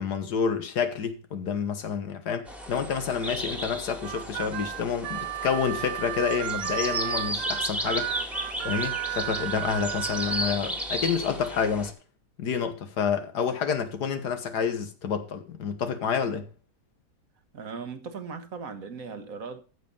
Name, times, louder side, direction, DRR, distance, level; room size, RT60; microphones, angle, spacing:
voice 1, 0.0-8.1 8.6-11.9 12.4-16.5, left 6 dB, 80° left, 1.9 m, -29 dB
sound 1, 2.5-11.9, equal, ahead, 1.7 m, -34 dB
Harmonica, 4.0-10.6, right 14 dB, 85° right, 1.3 m, -33 dB
voice 2, 17.5-19.6, right 5 dB, 60° right, 1.6 m, -38 dB
14.5 x 5.4 x 5.4 m
omnidirectional pair, 1.7 m